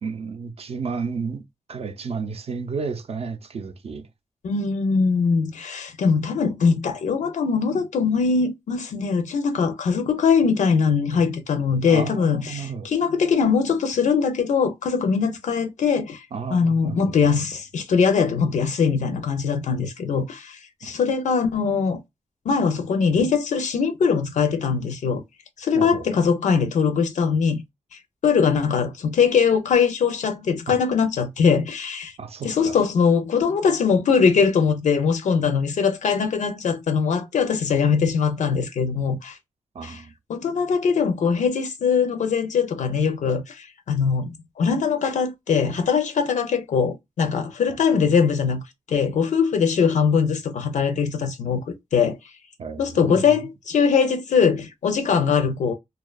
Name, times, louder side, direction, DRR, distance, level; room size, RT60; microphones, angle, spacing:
voice 1, 0.0-1.4 1.7-4.1 11.9-12.9 16.3-17.4 20.8-20.9 25.7-26.1 32.2-32.7 39.7-40.1 47.7-47.8 52.6-53.5, right 5 dB, 55° right, 0.4 m, -32 dB
voice 2, 4.4-16.2 16.5-22.0 22.5-25.2 25.6-27.6 27.9-32.1 32.4-39.4 39.8-40.0 40.3-48.6 48.9-52.2 52.8-55.7, left 6 dB, 75° left, 0.4 m, -21 dB
2.6 x 2.2 x 2.2 m
wide cardioid pair, 105°, 13 cm